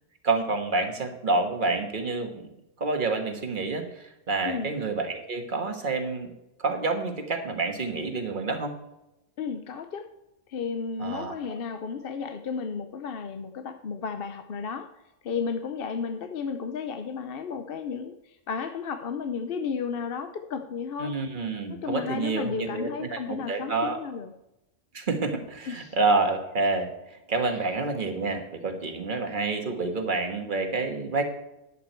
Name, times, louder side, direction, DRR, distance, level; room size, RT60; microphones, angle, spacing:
voice 1, 0.2-2.5 2.8-6.3 6.6-8.7 11.0-11.6 21.0-24.0 24.9-26.9 27.3-31.2, right 3 dB, 45° right, 5 dB, 1.5 m, -28 dB
voice 2, 9.4-10.1 10.5-14.9 15.2-18.1 18.5-21.1 21.7-24.3 25.7-25.9 27.5-27.6, left 6 dB, 55° left, 8 dB, 0.8 m, -33 dB
11.0 x 8.2 x 4.4 m, 0.93 s
omnidirectional pair, 1.3 m